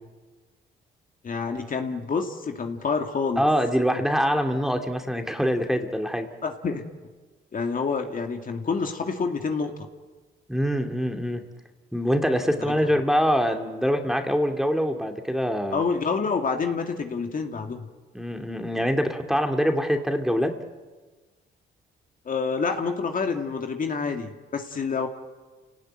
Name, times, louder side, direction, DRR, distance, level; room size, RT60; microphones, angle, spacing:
voice 1, 1.2-3.4 6.4-6.8 7.5-9.7 12.6-12.7 15.7-17.8 22.3-25.1, left 5 dB, 45° left, 4 dB, 2.5 m, -27 dB
voice 2, 3.4-6.3 10.5-11.4 11.9-15.8 18.1-20.5, equal, ahead, 5 dB, 2.7 m, -24 dB
28.5 x 18.0 x 9.3 m, 1.3 s
cardioid pair, 90°, 20 cm